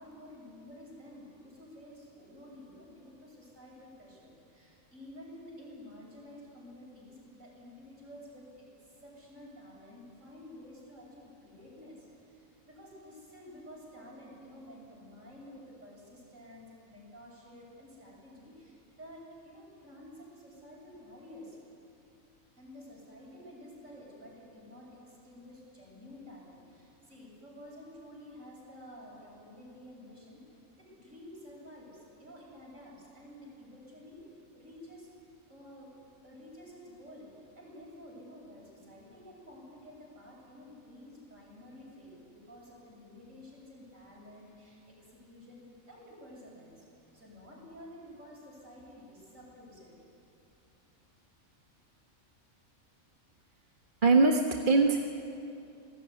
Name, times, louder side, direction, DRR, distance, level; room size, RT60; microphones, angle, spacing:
voice 1, 0.0-21.6 22.5-34.2 34.5-35.1 35.5-35.9 36.2-37.3 37.5-46.9 47.1-49.9, left 1 dB, 60° right, -3 dB, 8.2 m, -51 dB
voice 2, 54.0-55.0, right 3 dB, 35° right, 2 dB, 1.6 m, -22 dB
28.5 x 19.5 x 9.8 m, 2.6 s
omnidirectional pair, 1.5 m